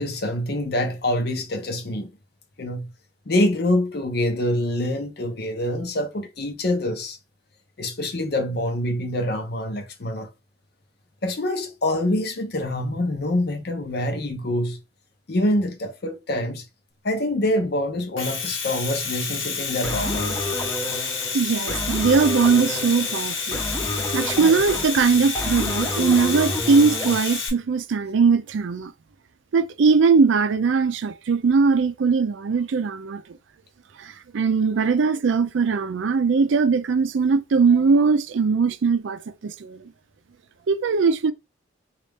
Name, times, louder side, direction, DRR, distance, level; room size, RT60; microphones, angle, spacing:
voice 1, 0.0-2.1 2.6-2.9 3.3-7.2 7.8-10.3 11.2-14.8 15.3-16.6 17.0-20.4, left 1 dB, 55° left, 0.7 m, -25 dB
Domestic sounds home sounds, 18.0-27.5, left 5 dB, 85° left, 1.0 m, -29 dB
sound 1, 19.8-27.2, left 1 dB, 10° left, 0.7 m, -30 dB
voice 2, 21.3-23.6 24.1-28.9 29.5-33.2 34.0-39.9 40.7-41.3, right 5 dB, 80° right, 0.4 m, -20 dB
4.0 x 2.4 x 3.4 m
head